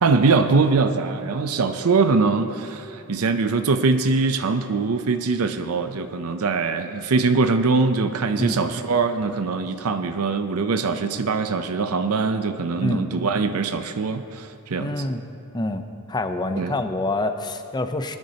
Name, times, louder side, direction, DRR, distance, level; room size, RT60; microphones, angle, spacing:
voice 1, 0.0-15.0 16.6-16.8, right 4 dB, 90° right, 8 dB, 0.6 m, -22 dB
voice 2, 14.8-15.2 15.5-15.8 16.1-18.2, left 2 dB, 20° left, 7 dB, 0.6 m, -26 dB
21.0 x 10.5 x 2.8 m, 2.6 s
head